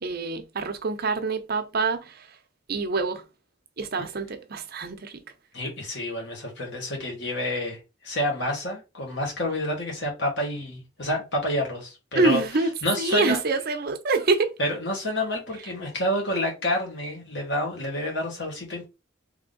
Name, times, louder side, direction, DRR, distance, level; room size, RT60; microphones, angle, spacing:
voice 1, 0.0-2.3 2.7-3.2 3.8-5.2 12.1-12.7 13.0-14.5, right 3 dB, 55° right, 0.7 m, -26 dB
voice 2, 5.5-7.8 8.0-12.4 12.8-13.4 14.6-18.9, left 1 dB, 65° left, 1.8 m, -28 dB
3.6 x 3.4 x 3.8 m
head